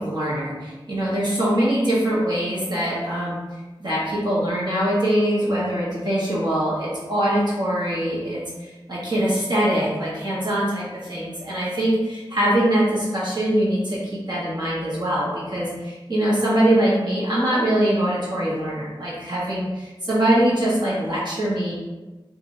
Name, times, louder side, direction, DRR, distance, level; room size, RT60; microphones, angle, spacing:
voice 1, 0.0-3.4 3.8-8.4 8.9-14.0 14.3-21.7, right 1 dB, 50° right, -7 dB, 1.2 m, -23 dB
4.8 x 2.6 x 2.7 m, 1.2 s
wide cardioid pair, 55°, 9 cm